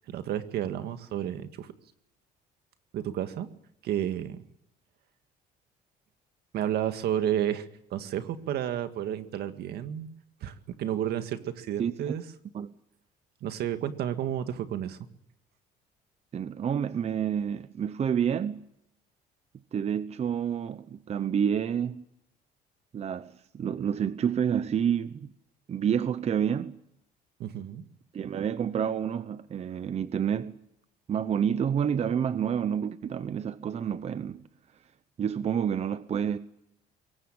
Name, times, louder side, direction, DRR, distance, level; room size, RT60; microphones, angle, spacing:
voice 1, 0.1-1.7 2.9-3.5 3.8-4.4 6.5-10.1 10.4-12.2 13.4-15.0 27.4-27.8, right 10 dB, 70° right, 1.9 m, -31 dB
voice 2, 11.8-12.1 12.5-12.7 16.3-18.6 19.7-22.0 22.9-25.3 25.7-26.8 28.1-30.6 31.1-34.4 35.2-36.4, right 8 dB, 40° right, 0.8 m, -29 dB
23.0 x 18.5 x 8.9 m
cardioid pair, 110°, 17 cm